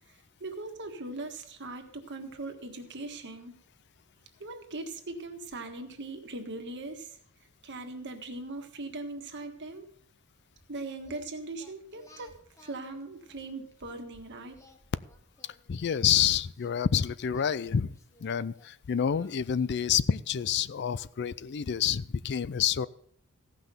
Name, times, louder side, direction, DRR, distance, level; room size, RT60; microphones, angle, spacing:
voice 1, 0.1-3.5 4.4-7.2 7.6-9.9 10.7-14.6, right 2 dB, 55° right, 1.6 m, -40 dB
Singing, 11.0-14.0 14.5-16.9 17.3-19.9, left 2 dB, 15° left, 1.1 m, -59 dB
voice 2, 15.7-17.9 18.2-22.9, left 8 dB, 50° left, 0.4 m, -28 dB
15.5 x 5.9 x 6.8 m
head